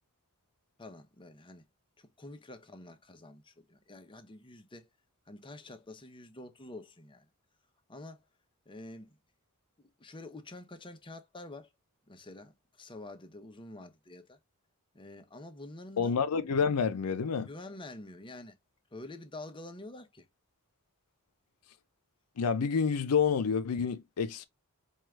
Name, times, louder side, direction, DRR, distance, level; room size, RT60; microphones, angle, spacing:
voice 1, 0.8-1.6 2.0-4.9 5.3-7.3 7.9-8.2 8.7-9.2 9.8-11.7 12.1-14.4 14.9-16.2 17.5-18.6 18.9-20.3, left 2 dB, 20° left, 0.7 m, -47 dB
voice 2, 16.0-17.5 22.4-24.4, left 6 dB, 85° left, 0.5 m, -28 dB
4.7 x 2.3 x 3.2 m
head